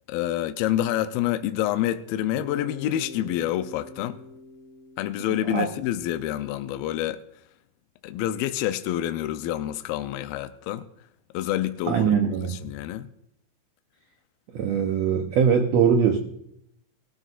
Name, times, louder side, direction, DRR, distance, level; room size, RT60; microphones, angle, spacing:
voice 1, 0.1-4.2 5.0-7.2 8.0-10.8 11.3-12.2 12.5-13.1, left 12 dB, 80° left, 2.4 m, -27 dB
Bass guitar, 2.4-6.4, left 3 dB, 40° left, 1.7 m, -44 dB
voice 2, 11.9-12.6 14.5-16.2, right 7 dB, 80° right, 1.5 m, -21 dB
20.0 x 14.0 x 2.5 m
omnidirectional pair, 4.3 m